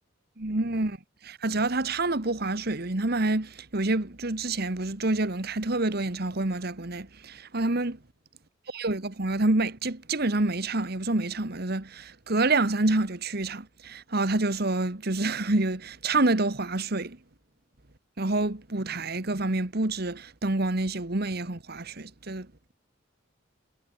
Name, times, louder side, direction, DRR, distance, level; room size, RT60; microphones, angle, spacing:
voice 1, 0.4-1.0 1.2-8.0 8.7-17.2 18.2-22.7, right 2 dB, 55° right, 1.7 m, -27 dB
head